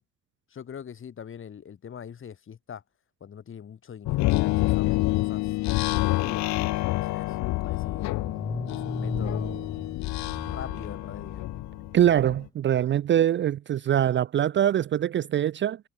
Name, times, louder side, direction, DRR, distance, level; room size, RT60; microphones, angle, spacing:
voice 1, 0.5-2.8 3.2-5.6 6.2-8.2 8.7-9.7 10.5-11.4, left 8 dB, 40° left, 2.4 m, -42 dB
sound 1, 4.1-12.4, left 19 dB, 65° left, 0.4 m, -28 dB
Car / Engine starting, 6.5-6.6 6.9-12.1, left 3 dB, 10° left, 1.1 m, -37 dB
voice 2, 11.9-15.8, right 10 dB, 40° right, 0.5 m, -23 dB
cardioid pair, 100°, 31 cm